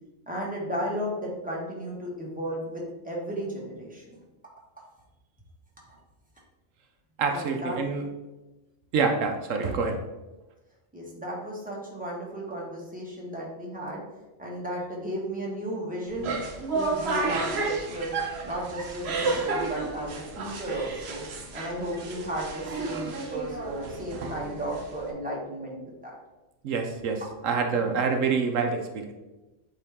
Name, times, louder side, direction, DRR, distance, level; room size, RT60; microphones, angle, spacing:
voice 1, 0.3-4.0 7.3-7.8 10.9-14.0 14.4-16.4 16.7-18.1 18.4-21.2 21.5-26.1, right 1 dB, 5° right, -4 dB, 1.5 m, -34 dB
voice 2, 7.2-8.1 8.9-10.0 26.6-29.1, right 5 dB, 80° right, 4 dB, 1.1 m, -26 dB
sound 1, 16.1-25.1, right 3 dB, 60° right, 1.1 m, -32 dB
8.2 x 3.8 x 3.6 m, 1.1 s
omnidirectional pair, 1.3 m